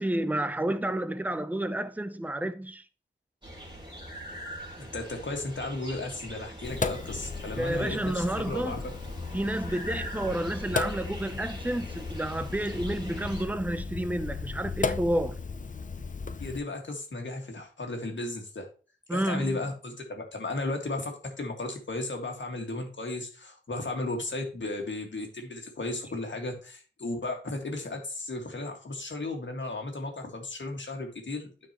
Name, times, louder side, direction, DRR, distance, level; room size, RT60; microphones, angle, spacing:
voice 1, 0.0-2.8 7.6-8.8 9.3-15.4 19.1-19.6, right 1 dB, 10° right, 0.6 m, -30 dB
sound 1, 3.4-13.4, equal, 25° right, 2.7 m, -43 dB
voice 2, 4.8-8.8 16.4-18.7 19.1-31.5, left 2 dB, 65° left, 1.8 m, -35 dB
Sink (filling or washing), 6.6-16.6, left 4 dB, 40° left, 0.5 m, -35 dB
12.0 x 4.5 x 3.0 m
wide cardioid pair, 80°, 20 cm